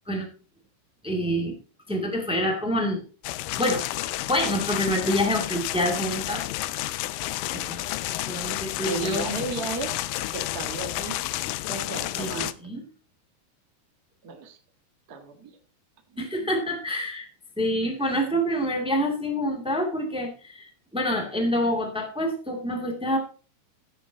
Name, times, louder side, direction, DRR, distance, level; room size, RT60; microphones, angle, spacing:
voice 1, 1.0-1.5 1.9-3.0 3.6-3.9 4.3-6.4 7.5-7.9 8.2-9.4 12.1-12.8 16.2-17.3 17.6-23.2, equal, 10° right, 1 dB, 0.3 m, -27 dB
sound 1, 3.2-12.5, left 16 dB, 85° left, 2.0 m, -31 dB
voice 2, 8.8-10.0 10.3-11.2 11.7-12.5 14.2-14.6 15.1-15.6 16.1-16.5, right 4 dB, 65° right, 4 dB, 0.9 m, -34 dB
15.5 x 7.2 x 3.9 m, 0.36 s
omnidirectional pair, 4.6 m